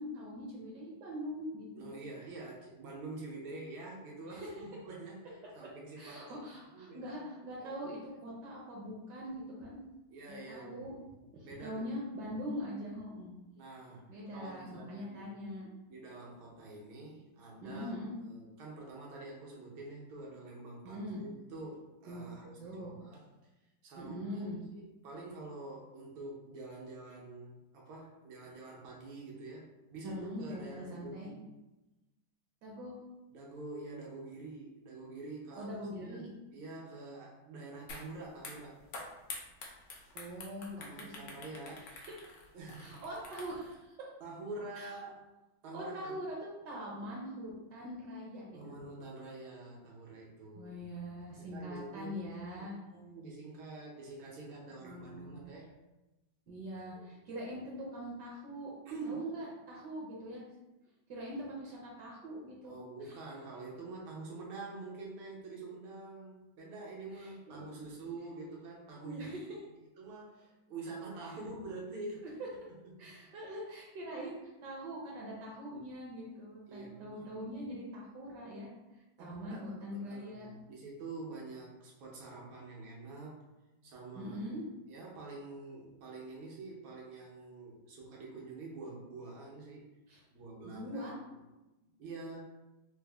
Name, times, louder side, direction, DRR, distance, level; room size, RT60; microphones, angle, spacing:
voice 1, 0.0-1.9 4.3-4.5 6.0-9.8 10.3-10.9 11.3-13.3 14.1-15.7 17.6-18.2 20.8-21.2 22.1-23.0 24.0-24.6 30.0-31.3 32.6-32.9 35.5-36.3 40.1-41.1 41.7-42.4 42.8-44.1 44.7-45.0 45.7-48.7 50.5-52.7 54.8-55.4 56.5-58.7 59.0-60.4 61.1-63.2 67.1-67.7 69.0-69.4 71.3-71.4 73.0-80.5 84.2-84.6 90.1-90.2 90.6-91.1, equal, 70° right, -3 dB, 1.2 m, -43 dB
voice 2, 1.8-6.5 6.7-7.2 7.6-7.9 10.1-10.8 11.4-11.9 13.5-15.3 15.9-17.9 18.2-23.2 23.8-31.5 33.3-38.8 40.8-41.9 42.5-43.0 44.2-45.2 45.6-46.2 48.5-50.9 51.3-52.1 52.5-55.7 57.0-57.1 58.9-59.3 62.6-69.4 70.0-72.2 72.8-73.3 76.7-77.4 79.2-83.4 83.8-84.4 84.9-89.9 90.3-91.1 91.8-92.4, right 3 dB, 85° right, -3 dB, 1.7 m, -46 dB
sound 1, 37.9-38.1 38.4-43.7, left 3 dB, 70° left, 1.0 m, -47 dB
4.1 x 2.0 x 3.4 m, 1.0 s
omnidirectional pair, 2.2 m